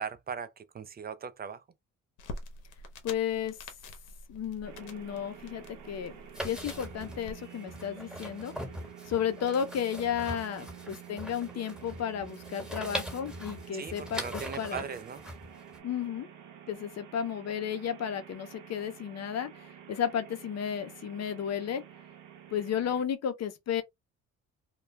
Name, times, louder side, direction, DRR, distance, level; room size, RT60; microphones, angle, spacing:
voice 1, 0.0-1.6 10.6-10.7 13.7-15.2, right 6 dB, 30° right, 0.4 m, -39 dB
sound 1, 2.2-7.3, left 2 dB, 85° left, 0.8 m, -46 dB
voice 2, 3.0-3.6 4.3-6.1 6.4-8.5 9.1-14.8 15.8-16.3 16.7-21.8 22.5-23.8, left 8 dB, 60° left, 0.7 m, -33 dB
sound 2, 4.6-23.0, right 9 dB, 85° right, 0.6 m, -49 dB
sound 3, 6.3-15.8, equal, ahead, 1.3 m, -41 dB
2.3 x 2.2 x 3.1 m
cardioid pair, 90°, 30 cm